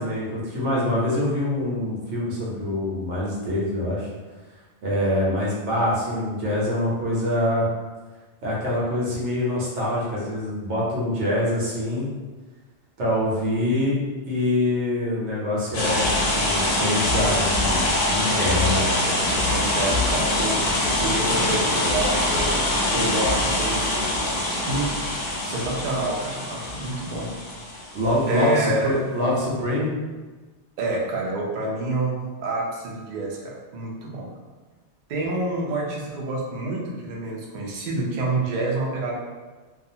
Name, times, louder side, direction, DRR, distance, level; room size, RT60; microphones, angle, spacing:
voice 1, 0.0-4.1 4.8-7.7 8.4-12.1 13.0-14.0 14.3-18.8 27.9-29.9, left 1 dB, 85° right, -5 dB, 1.1 m, -25 dB
sound 1, 15.7-28.3, left 1 dB, 60° left, 0.7 m, -24 dB
voice 2, 18.3-24.9 25.4-27.3 28.2-29.0 30.8-34.3 35.1-39.2, right 2 dB, 55° right, -2 dB, 0.5 m, -28 dB
2.4 x 2.3 x 2.7 m, 1.3 s
omnidirectional pair, 1.2 m